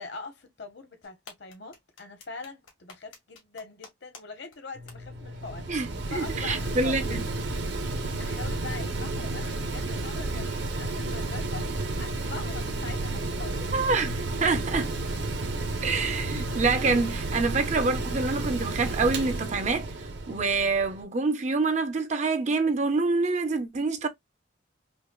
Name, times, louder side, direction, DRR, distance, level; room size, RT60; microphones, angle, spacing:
voice 1, 0.0-5.7 6.1-7.2 8.2-11.7 12.0-13.7, left 3 dB, 55° left, 0.9 m, -42 dB
sound 1, 1.0-4.2 4.5-4.6 4.9-5.0, left 4 dB, 80° left, 1.6 m, -48 dB
Mechanical fan, 4.8-21.0, right 2 dB, 60° right, 0.8 m, -32 dB
voice 2, 5.7-7.2 13.7-14.9 15.8-19.9 20.3-24.1, right 3 dB, 35° right, 0.5 m, -26 dB
5.1 x 2.0 x 2.2 m
head